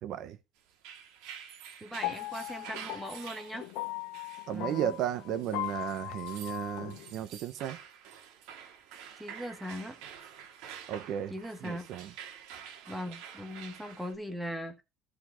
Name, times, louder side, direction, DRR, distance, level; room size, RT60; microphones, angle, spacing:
voice 1, 0.0-0.4 4.5-7.8 10.9-11.3 11.6-12.1, right 10 dB, 50° right, 0.6 m, -34 dB
sound 1, 0.7-14.1, right 8 dB, 80° right, 1.7 m, -48 dB
voice 2, 1.8-3.7 4.5-4.9 9.2-10.0 11.3-11.9 12.9-14.8, equal, 5° right, 1.1 m, -39 dB
sound 2, 1.9-7.1, left 18 dB, 85° left, 0.6 m, -39 dB
14.0 x 4.9 x 3.7 m
cardioid pair, 170°, 0 cm